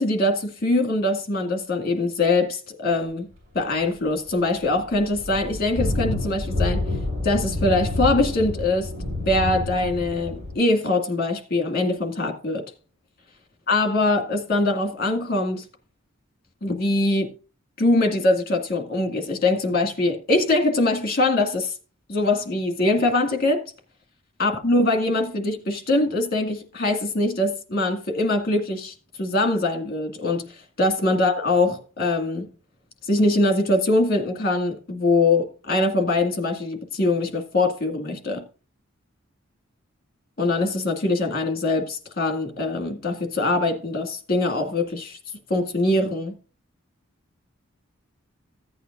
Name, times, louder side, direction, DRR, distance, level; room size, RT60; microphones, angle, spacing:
voice 1, 0.0-3.3 3.5-6.8 7.2-8.9 9.3-12.6 13.7-15.7 16.6-17.3 17.8-21.7 22.1-23.6 24.4-32.5 33.1-38.4 40.4-45.2 45.5-46.4, left 2 dB, 45° left, 2.1 m, -23 dB
sound 1, 4.0-4.1 4.3-10.5, left 2 dB, 50° right, 6.8 m, -28 dB
15.0 x 8.5 x 2.6 m
head